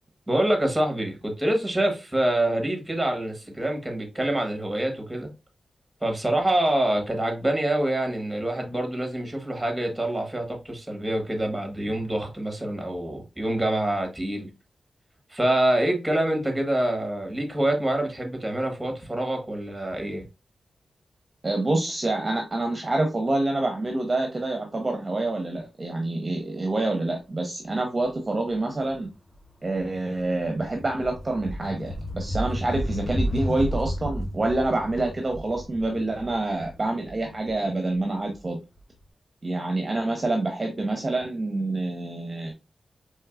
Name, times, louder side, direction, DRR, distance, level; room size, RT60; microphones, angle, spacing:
voice 1, 0.3-5.3 6.0-14.5 15.3-20.2, right 1 dB, 10° right, 1.3 m, -26 dB
voice 2, 21.4-29.1 29.6-38.6 39.4-42.5, right 2 dB, 30° right, 0.8 m, -27 dB
sound 1, 29.1-29.2 29.4-38.3, equal, 45° left, 2.3 m, -32 dB
4.5 x 3.2 x 2.3 m
wide cardioid pair, 95°, 0 cm